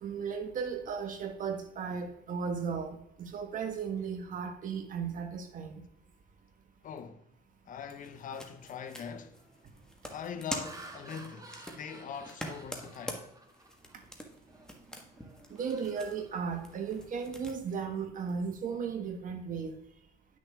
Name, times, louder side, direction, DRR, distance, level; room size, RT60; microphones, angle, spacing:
voice 1, 0.0-5.8 15.5-19.8, right 6 dB, 50° right, 1.5 m, -36 dB
voice 2, 6.8-7.2 7.7-9.4 10.1-13.3, left 7 dB, 50° left, 0.9 m, -42 dB
sound 1, 8.0-17.6, equal, 5° left, 1.5 m, -46 dB
Laughter, 8.7-8.8 9.3-9.6 10.2-14.0 14.5-14.7 15.1-17.0, right 3 dB, 20° right, 1.4 m, -51 dB
10.0 x 6.3 x 3.6 m
cardioid pair, 110°, 17 cm